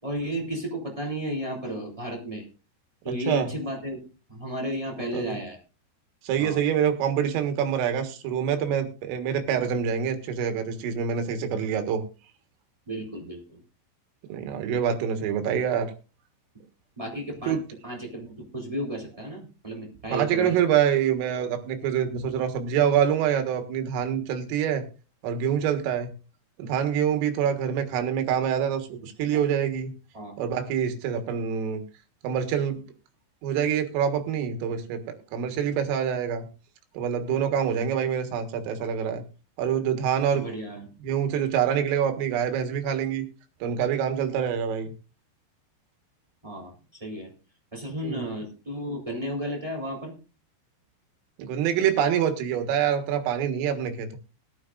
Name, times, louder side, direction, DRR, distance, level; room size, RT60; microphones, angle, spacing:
voice 1, 0.0-2.4 3.0-4.0 4.3-5.6 6.4-6.6 12.9-13.6 17.0-17.6 17.8-20.5 29.3-29.4 30.1-30.3 40.3-40.9 46.4-46.7 47.0-47.3 47.7-50.1, equal, 10° right, -1 dB, 2.4 m, -33 dB
voice 2, 6.2-12.0 14.3-15.9 17.5-17.6 20.1-24.8 25.2-26.1 26.6-29.9 30.4-31.8 32.2-32.8 33.4-36.5 37.0-39.2 39.6-40.5 41.0-43.2 43.6-44.9 48.0-48.3 51.4-54.2, right 8 dB, 85° right, 7 dB, 4.2 m, -26 dB
21.0 x 9.6 x 2.5 m, 0.33 s
omnidirectional pair, 5.8 m